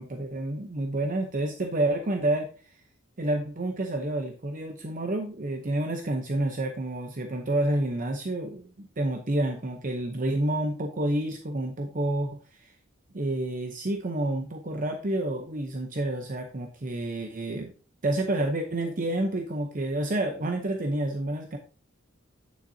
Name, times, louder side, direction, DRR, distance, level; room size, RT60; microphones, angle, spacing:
voice 1, 0.0-2.5 3.2-12.7 13.1-17.7 18.0-21.6, right 1 dB, 40° right, 4 dB, 0.8 m, -29 dB
8.9 x 7.2 x 2.7 m, 0.37 s
head